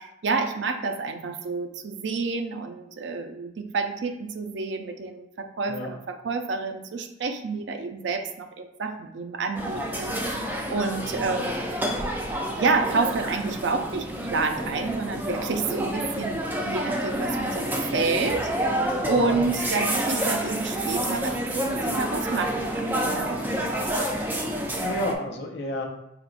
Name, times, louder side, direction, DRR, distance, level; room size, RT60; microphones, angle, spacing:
voice 1, 0.0-11.8 12.5-16.4 16.7-23.5, right 4 dB, 75° right, 6 dB, 0.4 m, -29 dB
sound 1, 9.5-25.1, right 1 dB, 10° right, 0.4 m, -28 dB
voice 2, 11.0-11.4 19.1-19.5 24.8-25.9, left 1 dB, 65° left, 2 dB, 0.6 m, -31 dB
5.0 x 2.9 x 2.5 m, 0.85 s
head